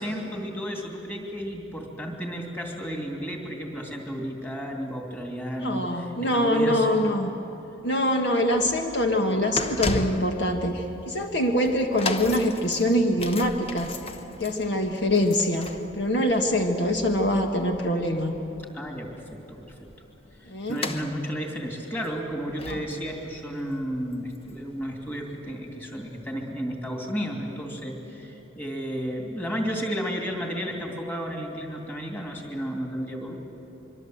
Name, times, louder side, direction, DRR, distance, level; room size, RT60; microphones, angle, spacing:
voice 1, 0.0-7.0 18.7-19.7 20.4-33.4, equal, 10° left, 0 dB, 2.8 m, -33 dB
voice 2, 5.6-7.3 7.8-14.0 14.4-18.3 20.5-20.8 22.7-22.8, left 1 dB, 60° left, 3 dB, 1.6 m, -24 dB
sound 1, 8.5-24.8 25.1-25.3 26.1-26.2, left 2 dB, 30° left, 0.9 m, -37 dB
25.0 x 24.0 x 8.0 m, 2.9 s
head